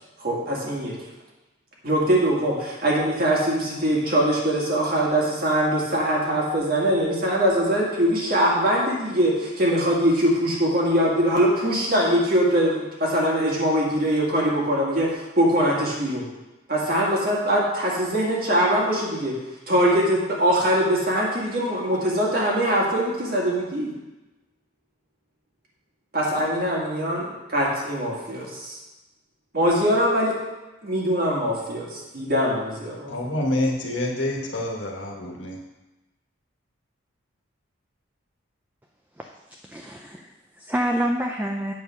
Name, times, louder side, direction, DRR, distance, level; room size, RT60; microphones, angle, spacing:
voice 1, 0.2-1.0 1.8-16.2 16.7-19.3 19.7-23.9 26.1-28.8 29.5-30.3 30.8-33.1, equal, 45° right, -3 dB, 1.9 m, -22 dB
voice 2, 33.1-35.6, left 1 dB, 65° left, -1 dB, 1.4 m, -27 dB
voice 3, 39.6-41.7, equal, 10° right, 2 dB, 0.4 m, -27 dB
8.4 x 4.7 x 5.8 m, 1.1 s
head